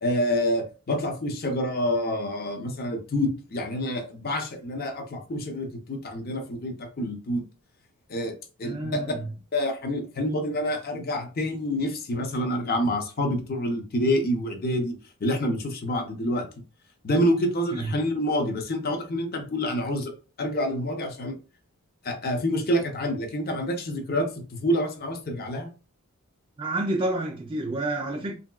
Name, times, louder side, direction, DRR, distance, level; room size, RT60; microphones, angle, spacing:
voice 1, 0.0-7.4 8.1-8.3 8.6-9.0 9.5-15.0 15.2-16.5 17.0-20.1 20.4-21.3 22.0-25.7, equal, 45° left, 0.6 m, -27 dB
voice 2, 8.6-9.3 17.7-17.9 26.6-28.4, right 2 dB, 25° right, 0.3 m, -29 dB
2.9 x 2.7 x 2.3 m
head